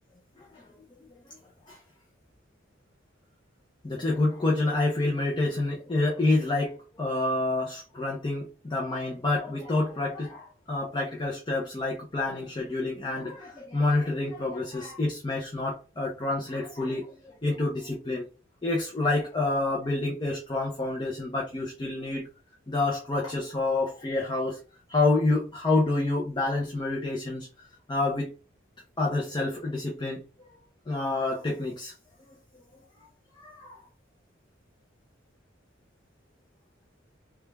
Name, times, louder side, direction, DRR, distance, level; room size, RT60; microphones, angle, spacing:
voice 1, 3.8-18.3 18.6-22.3 22.7-24.6 24.9-27.5 27.9-28.3 29.0-30.2 30.9-31.9 33.4-33.6, left 2 dB, 25° left, 0.6 m, -28 dB
3.5 x 2.3 x 3.2 m
head